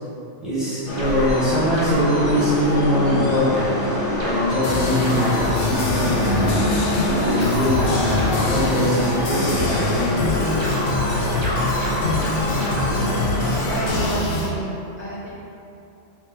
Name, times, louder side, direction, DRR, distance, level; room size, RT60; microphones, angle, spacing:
voice 1, 0.4-3.7 4.2-6.8 7.1-10.1 14.0-14.1, left 1 dB, ahead, -12 dB, 1.1 m, -22 dB
sound 1, 0.9-14.1, left 1 dB, 65° left, 1.1 m, -26 dB
sound 2, 1.0-13.8, right 1 dB, 45° right, 0.3 m, -30 dB
sound 3, 4.6-14.5, left 2 dB, 85° left, 1.1 m, -25 dB
voice 2, 13.6-15.3, equal, 45° left, -9 dB, 0.6 m, -29 dB
3.4 x 3.2 x 3.6 m, 2.8 s
omnidirectional pair, 1.4 m